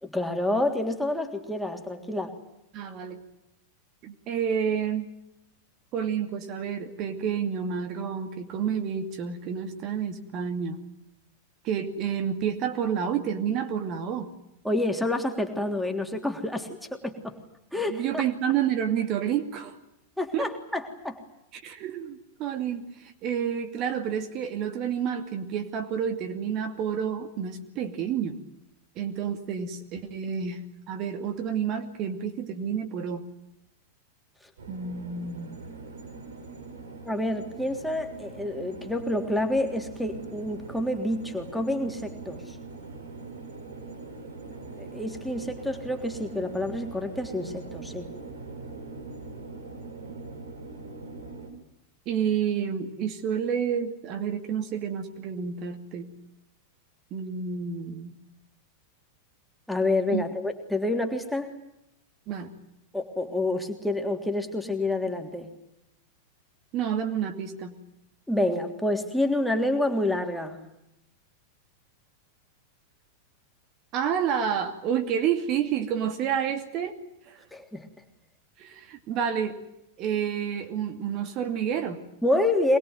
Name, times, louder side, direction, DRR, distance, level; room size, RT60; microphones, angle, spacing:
voice 1, 0.0-2.3 14.6-17.4 17.7-18.2 20.2-21.2 37.1-42.5 44.8-48.1 59.7-61.5 62.9-65.5 68.3-70.6 77.5-77.9 82.2-82.8, left 1 dB, ahead, 4 dB, 3.4 m, -28 dB
voice 2, 2.7-3.2 4.0-5.1 5.9-10.8 11.6-14.3 17.9-19.8 20.3-20.5 21.5-28.4 29.0-33.2 34.7-35.6 52.1-56.1 57.1-58.1 60.1-60.2 62.3-62.5 66.7-67.8 73.9-77.0 77.3-77.4 78.6-79.6 80.0-82.0, right 8 dB, 40° right, 6 dB, 2.5 m, -29 dB
sound 1, 34.6-51.5, right 3 dB, 65° right, 7.5 m, -42 dB
24.5 x 21.5 x 9.4 m, 0.84 s
figure-of-eight pair, 90°, 0 cm